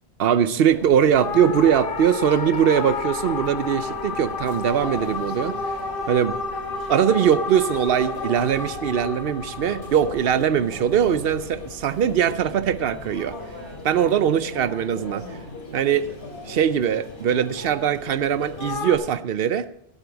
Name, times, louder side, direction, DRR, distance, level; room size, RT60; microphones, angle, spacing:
voice 1, 0.2-5.6 6.1-6.4 6.9-13.4 13.8-15.4 15.7-16.1 16.5-19.7, right 9 dB, 70° right, 14 dB, 0.8 m, -21 dB
Conversation / Chatter / Crowd, 0.7-19.1, left 2 dB, 85° left, 2.7 m, -39 dB
sound 1, 1.1-11.6 18.6-19.0, left 4 dB, 60° left, 1.1 m, -31 dB
16.0 x 8.2 x 4.0 m, 0.77 s
omnidirectional pair, 1.0 m